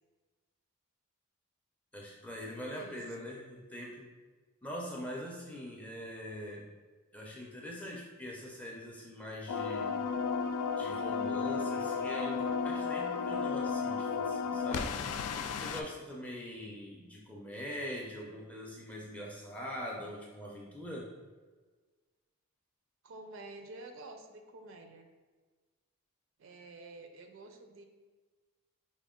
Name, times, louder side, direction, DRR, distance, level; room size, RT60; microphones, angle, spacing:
voice 1, 1.9-4.1 4.6-6.7 7.1-10.1 10.7-15.0 15.5-21.1, equal, 5° left, -2 dB, 0.4 m, -43 dB
voice 2, 2.7-3.0 16.6-16.7 23.0-25.1 26.4-27.8, right 2 dB, 60° right, 5 dB, 0.4 m, -49 dB
sound 1, 9.5-15.8, left 5 dB, 90° left, 0.3 m, -33 dB
5.0 x 2.1 x 3.6 m, 1.4 s
head